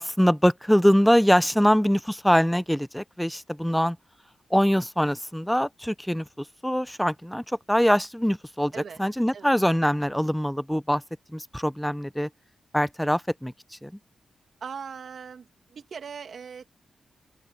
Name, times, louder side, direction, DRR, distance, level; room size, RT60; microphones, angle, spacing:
voice 1, 0.0-4.0 4.5-6.2 6.6-8.7 9.0-11.0 11.3-12.3 12.7-13.5 13.8-13.9, equal, ahead, 0.6 m, -23 dB
voice 2, 14.6-16.7, right 6 dB, 60° right, 2.5 m, -40 dB
open air
wide cardioid pair, 110°, 0 cm